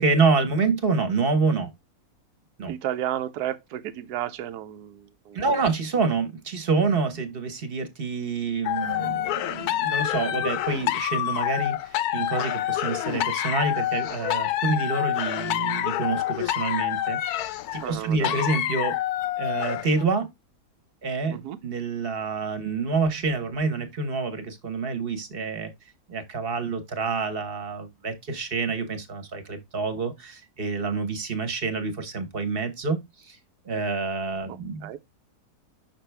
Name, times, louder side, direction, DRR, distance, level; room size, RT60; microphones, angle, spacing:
voice 1, 0.0-1.7 2.6-2.7 5.3-11.8 12.1-19.0 19.4-20.3 21.0-25.7 26.1-33.0 33.2-33.4 33.7-35.0, right 4 dB, 40° right, 1.2 m, -27 dB
voice 2, 2.7-5.7 17.8-18.4 21.3-21.6 34.5-35.0, right 11 dB, 75° right, 1.1 m, -33 dB
sound 1, 8.6-20.0, left 13 dB, 75° left, 1.0 m, -27 dB
6.0 x 5.9 x 3.3 m
omnidirectional pair, 1.7 m